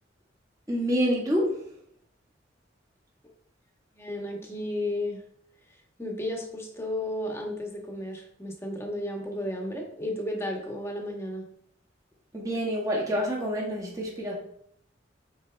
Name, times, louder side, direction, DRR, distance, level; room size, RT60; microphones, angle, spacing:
voice 1, 0.7-1.6 12.3-14.3, equal, 20° right, -3 dB, 1.8 m, -27 dB
voice 2, 3.9-5.2 6.0-11.5, left 1 dB, 15° left, 0 dB, 1.4 m, -33 dB
9.3 x 4.6 x 3.5 m, 0.68 s
head